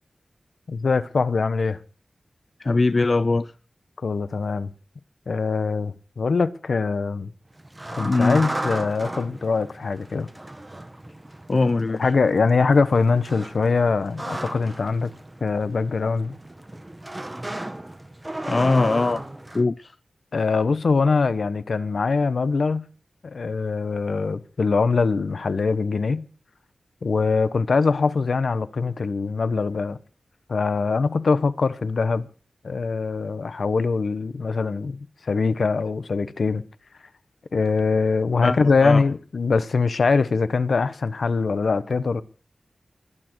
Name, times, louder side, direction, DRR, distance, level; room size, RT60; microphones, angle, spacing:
voice 1, 0.7-1.8 4.0-4.7 5.3-7.3 7.9-10.3 12.0-15.1 15.4-16.3 20.3-22.8 23.2-26.2 27.0-30.0 30.5-32.3 32.6-35.0 35.2-36.6 37.5-42.2, left 4 dB, 75° left, 1.2 m, -23 dB
voice 2, 2.6-3.5 8.0-8.4 11.5-12.1 18.5-19.2 19.5-19.9 38.4-39.0, left 3 dB, 50° left, 0.6 m, -21 dB
sound 1, 7.5-19.6, right 1 dB, 20° right, 1.7 m, -35 dB
21.5 x 8.9 x 4.8 m
wide cardioid pair, 75°, 0 cm